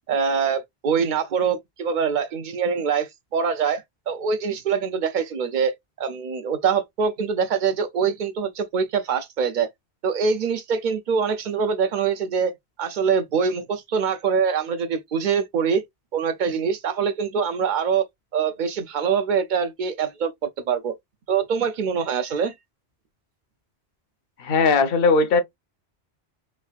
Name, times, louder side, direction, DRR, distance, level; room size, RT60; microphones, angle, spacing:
voice 1, 0.1-9.7 10.0-12.5 12.8-15.8 16.1-18.0 18.3-20.3 20.7-20.9 21.3-22.5, right 6 dB, 55° right, 0.6 m, -24 dB
voice 2, 24.4-25.4, left 4 dB, 65° left, 0.7 m, -18 dB
3.3 x 2.4 x 2.3 m
omnidirectional pair, 1.1 m